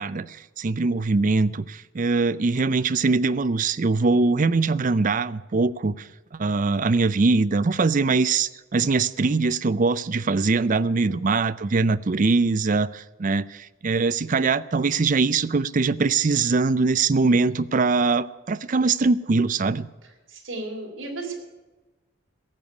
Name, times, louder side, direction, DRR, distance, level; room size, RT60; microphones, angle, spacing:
voice 1, 0.0-6.1 6.3-19.9, right 4 dB, 40° right, 0.5 m, -22 dB
voice 2, 20.3-21.4, right 2 dB, 75° right, 4.1 m, -34 dB
17.5 x 7.2 x 9.4 m
head